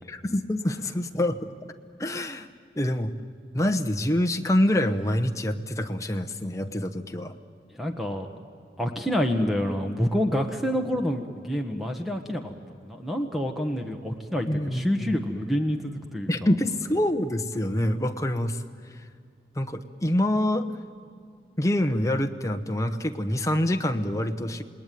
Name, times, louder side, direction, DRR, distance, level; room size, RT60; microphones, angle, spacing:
voice 1, 0.1-1.4 2.0-2.5 2.8-3.1 3.5-7.3 14.5-15.1 16.3-18.6 19.5-20.7 21.6-24.6, left 1 dB, 20° left, 5 dB, 1.0 m, -26 dB
voice 2, 7.7-8.3 8.8-12.5 12.8-16.3, equal, ahead, 4 dB, 1.3 m, -27 dB
28.0 x 19.5 x 9.3 m, 2.2 s
head